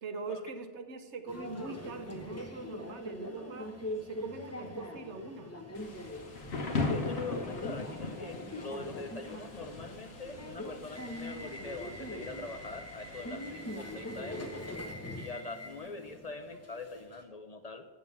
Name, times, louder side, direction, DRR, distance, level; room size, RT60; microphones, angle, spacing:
voice 1, 0.0-3.7 4.0-5.5, right 4 dB, 85° right, 8 dB, 1.2 m, -42 dB
Subway metro underground, 1.3-17.2, left 1 dB, 15° left, 1.1 m, -42 dB
Thunder / Rain, 5.7-14.8, left 3 dB, 70° left, 1.4 m, -40 dB
voice 2, 6.8-14.5 15.2-17.8, left 3 dB, 45° left, 7 dB, 0.6 m, -43 dB
8.6 x 7.0 x 7.0 m, 1.4 s
omnidirectional pair, 1.1 m